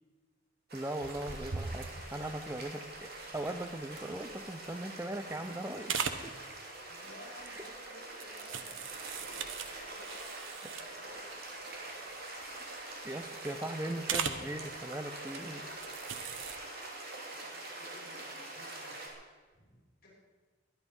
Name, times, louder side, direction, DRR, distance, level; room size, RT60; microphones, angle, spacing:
voice 1, 0.7-6.3 7.4-7.6 8.9-9.0 13.0-15.6, right 1 dB, 15° right, 7 dB, 0.7 m, -39 dB
sound 1, 0.7-19.1, right 2 dB, 50° right, 3.0 m, -45 dB
sound 2, 1.0-4.7 5.1-5.5 5.8-6.3 7.4-7.7 8.2-11.1 11.5-11.6 11.9-12.1 12.4-13.1 14.1-14.5 15.2-15.4 15.8-16.6, right 6 dB, 85° right, 1.1 m, -39 dB
voice 2, 6.9-10.3 10.5-11.2 17.3-19.0 19.5-20.1, left 1 dB, 50° left, -4 dB, 5.6 m, -56 dB
21.5 x 10.5 x 5.4 m, 1.4 s
head